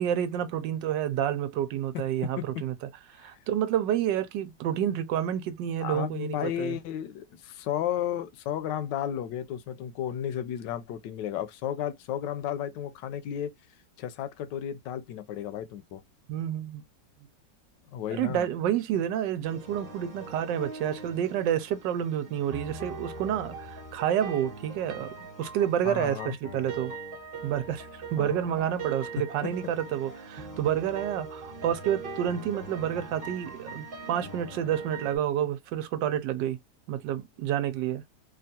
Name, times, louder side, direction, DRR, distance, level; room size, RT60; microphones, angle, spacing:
voice 1, 0.0-2.7 3.2-6.8 16.3-16.8 18.1-26.9 27.4-36.6 36.9-38.0, right 10 dB, 90° right, 1.3 m, -29 dB
voice 2, 5.8-13.5 14.0-16.0 17.9-18.5 25.8-26.4 28.2-28.4 29.4-29.5, left 10 dB, 80° left, 1.2 m, -33 dB
sound 1, 19.4-35.2, right 3 dB, 35° right, 1.1 m, -41 dB
3.5 x 2.4 x 2.6 m
omnidirectional pair, 1.9 m